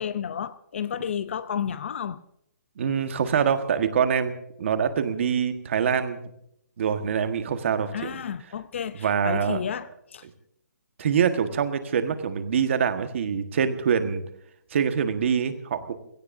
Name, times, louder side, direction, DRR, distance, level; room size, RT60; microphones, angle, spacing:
voice 1, 0.0-2.2 7.9-10.2, left 8 dB, 40° left, 0.5 m, -31 dB
voice 2, 2.8-6.2 6.8-7.9 9.0-9.6 11.0-14.2 14.7-15.9, right 7 dB, 40° right, 1.5 m, -24 dB
27.5 x 17.5 x 2.7 m
hypercardioid pair, 170°, 10 cm